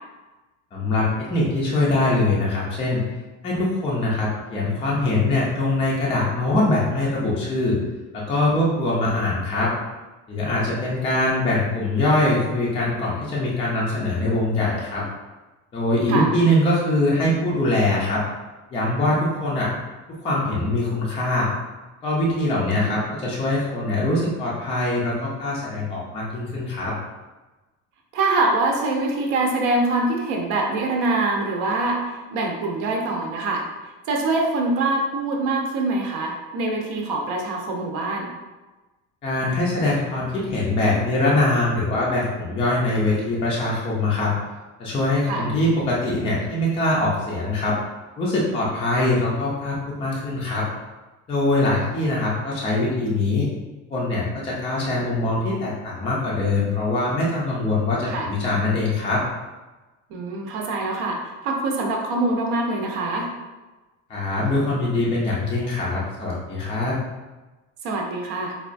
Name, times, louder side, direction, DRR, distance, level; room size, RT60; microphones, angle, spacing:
voice 1, 0.7-3.0 3.4-7.8 8.1-9.7 10.3-15.0 15.7-18.2 18.7-19.7 20.1-21.5 22.0-26.9 39.2-44.3 44.8-47.8 48.2-50.7 51.3-53.5 53.9-59.2 64.1-66.9, left 2 dB, 15° left, -6 dB, 0.4 m, -23 dB
voice 2, 22.6-23.1 28.1-33.6 34.1-38.3 45.3-45.5 58.1-58.3 60.1-63.3 67.8-68.5, right 2 dB, 60° right, 0 dB, 0.7 m, -24 dB
4.9 x 2.3 x 2.5 m, 1.2 s
cardioid pair, 175°, 35 cm